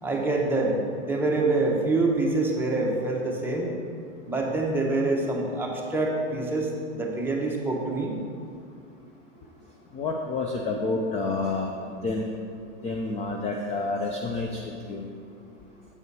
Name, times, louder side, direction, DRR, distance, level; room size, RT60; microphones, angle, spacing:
voice 1, 0.0-3.7 4.3-8.2, right 2 dB, 5° right, -2 dB, 1.0 m, -26 dB
voice 2, 9.9-12.3 12.8-14.6 14.9-15.1, left 3 dB, 20° left, 1 dB, 0.5 m, -29 dB
8.1 x 5.5 x 4.7 m, 2.3 s
hypercardioid pair, 125°, 35 cm